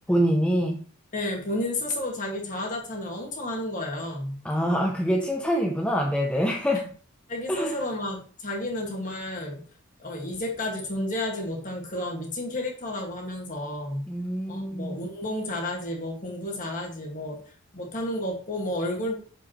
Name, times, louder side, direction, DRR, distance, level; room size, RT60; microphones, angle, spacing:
voice 1, 0.1-0.8 4.4-6.9 7.5-7.8 14.1-15.0, equal, 5° left, 0.4 m, -25 dB
voice 2, 1.1-4.4 7.3-9.6 10.0-14.0 14.5-17.4 17.7-19.1, left 1 dB, 35° left, 1.7 m, -31 dB
6.8 x 5.1 x 3.0 m
head